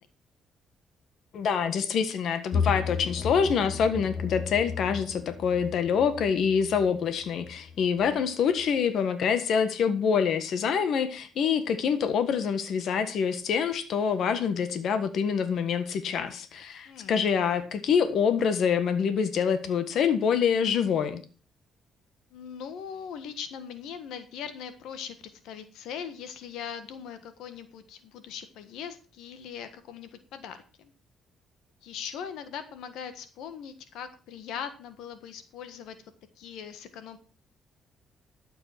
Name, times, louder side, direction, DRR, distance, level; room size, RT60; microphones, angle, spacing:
voice 1, 1.3-21.2, left 6 dB, 70° left, 10 dB, 1.5 m, -26 dB
sound 1, 2.5-8.3 8.6-8.7, left 6 dB, 50° left, 4.4 m, -34 dB
voice 2, 7.8-8.3 16.8-17.1 22.3-30.9 31.8-36.0 36.4-37.2, left 8 dB, 85° left, 10 dB, 1.5 m, -40 dB
12.0 x 8.0 x 5.9 m, 0.37 s
cardioid pair, 90°, 0 cm